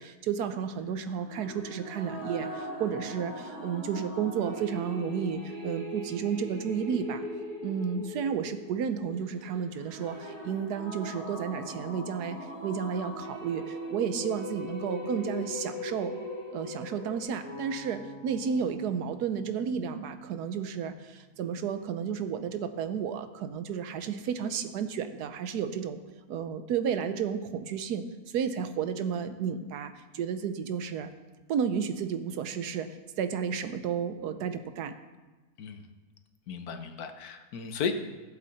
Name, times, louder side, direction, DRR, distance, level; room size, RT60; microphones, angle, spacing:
voice 1, 0.0-7.2 7.6-16.1 16.5-26.0 26.3-31.1 31.5-35.0, right 7 dB, 90° right, 10 dB, 1.3 m, -32 dB
sound 1, 1.2-17.2, equal, 70° right, 2.9 m, -39 dB
sound 2, 17.4-21.2, left 1 dB, 45° right, 4.0 m, -48 dB
voice 2, 36.5-37.9, left 6 dB, 75° left, 8 dB, 1.4 m, -34 dB
17.5 x 7.6 x 4.1 m, 1.2 s
omnidirectional pair, 1.6 m